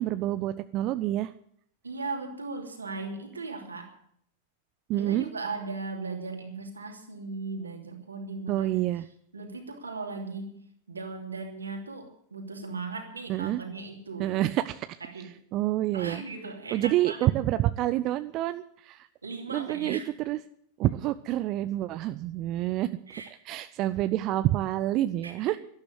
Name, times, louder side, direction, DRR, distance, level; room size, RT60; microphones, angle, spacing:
voice 1, 0.0-1.3 4.9-5.2 8.5-9.1 13.3-13.6 14.2-15.0 15.5-16.2 16.7-19.1 19.5-20.4 20.8-22.9 23.4-25.6, right 14 dB, 40° right, 12 dB, 0.5 m, -28 dB
voice 2, 1.8-3.9 4.9-8.8 9.3-10.6 10.9-14.4 15.0-15.3 15.9-17.3 19.2-20.1 23.1-23.3 25.2-25.6, right 3 dB, 75° right, 3 dB, 2.9 m, -37 dB
12.5 x 12.5 x 8.1 m, 0.66 s
figure-of-eight pair, 90°, 0 cm